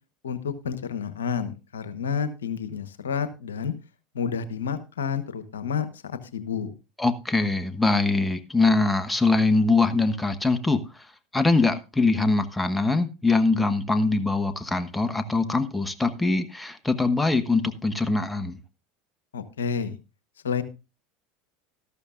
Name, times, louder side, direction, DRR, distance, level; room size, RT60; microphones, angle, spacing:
voice 1, 0.2-3.7 4.1-6.7 19.3-20.0 20.4-20.6, left 6 dB, 90° left, 1.0 m, -30 dB
voice 2, 7.0-11.1 11.3-18.6, left 3 dB, 10° left, 1.2 m, -23 dB
13.0 x 12.5 x 2.4 m
hypercardioid pair, 85°, 0 cm